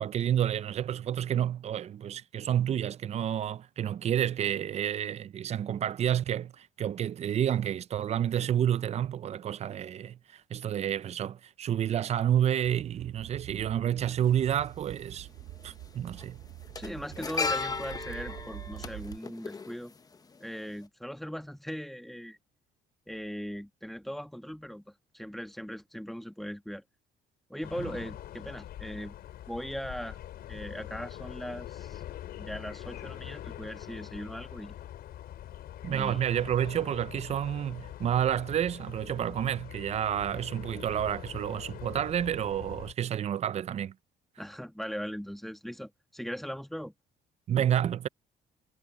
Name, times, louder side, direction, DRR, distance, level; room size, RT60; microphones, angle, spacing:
voice 1, 0.0-15.3 15.6-16.4 35.8-43.9 47.5-48.1, right 10 dB, 40° right, 0.5 m, -29 dB
sound 1, 12.6-19.2, right 15 dB, 90° right, 2.0 m, -46 dB
sound 2, 14.2-14.3 15.6-15.8 16.1-20.4 20.7-20.8, left 4 dB, 20° left, 0.8 m, -35 dB
voice 2, 16.8-19.9 20.4-22.4 23.1-26.8 27.5-29.2 29.5-30.2 30.5-32.0 32.4-34.8 35.9-36.2 44.4-46.9, equal, ahead, 1.6 m, -39 dB
sound 3, 27.6-42.9, left 12 dB, 65° left, 4.8 m, -44 dB
cardioid pair, 110°, 17 cm